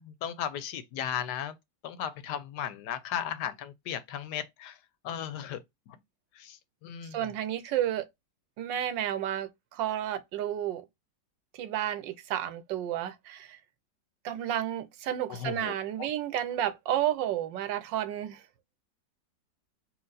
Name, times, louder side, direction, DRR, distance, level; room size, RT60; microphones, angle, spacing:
voice 1, 0.0-1.6 1.8-4.8 5.0-6.0 6.4-7.2 15.3-15.7, left 9 dB, 75° left, 1.2 m, -36 dB
voice 2, 7.1-8.1 8.6-10.9 11.5-13.6 14.2-18.4, right 11 dB, 85° right, 1.4 m, -31 dB
4.5 x 2.4 x 3.9 m
omnidirectional pair, 1.9 m